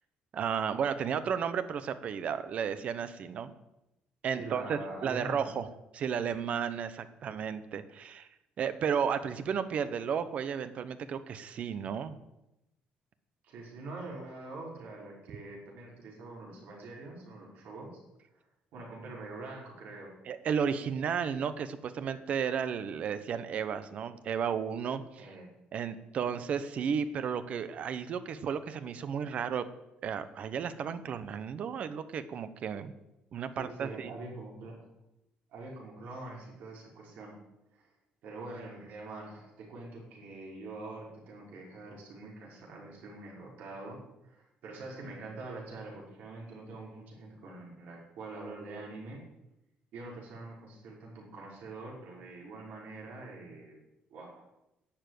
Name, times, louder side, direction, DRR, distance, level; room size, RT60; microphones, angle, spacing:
voice 1, 0.3-3.5 4.2-5.7 5.9-8.3 8.6-12.2 20.3-25.3 25.7-29.6 30.0-32.9 33.3-34.1, right 7 dB, 45° right, 12 dB, 1.0 m, -33 dB
voice 2, 4.3-5.5 7.3-7.4 13.4-18.0 18.7-20.1 25.2-25.5 33.6-34.8 35.5-37.3 37.7-37.9 38.2-49.2 49.9-53.8 54.1-54.5, right 2 dB, 65° right, -3 dB, 5.6 m, -44 dB
11.5 x 7.5 x 9.4 m, 0.92 s
cardioid pair, 160°, 3 cm